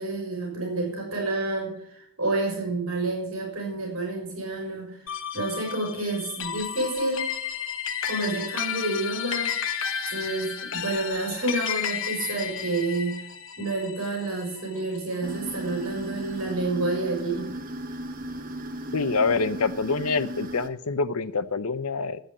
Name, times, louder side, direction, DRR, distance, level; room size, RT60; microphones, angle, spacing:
voice 1, 0.0-5.0 5.3-7.3 8.0-9.5 10.1-13.2 13.6-17.5, right 2 dB, 65° right, 0 dB, 4.9 m, -29 dB
sound 1, 5.1-15.7, left 8 dB, 60° left, 1.2 m, -33 dB
sound 2, 15.2-20.7, right 1 dB, 40° right, 1.1 m, -36 dB
voice 2, 18.9-22.2, left 4 dB, 85° left, 14 dB, 0.8 m, -26 dB
11.5 x 8.1 x 7.3 m, 0.69 s
head